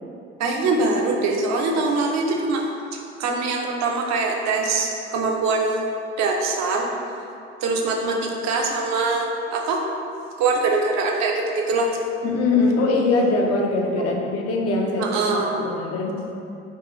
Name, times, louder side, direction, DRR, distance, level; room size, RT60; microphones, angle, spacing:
voice 1, 0.4-2.6 2.9-5.8 6.2-6.9 7.6-9.8 10.4-11.9 14.0-14.1 15.0-15.7, right 3 dB, 50° right, 0 dB, 0.6 m, -23 dB
voice 2, 12.2-16.1, left 3 dB, 45° left, 0 dB, 0.5 m, -22 dB
3.6 x 2.4 x 3.1 m, 2.6 s
figure-of-eight pair, 40°, 35 cm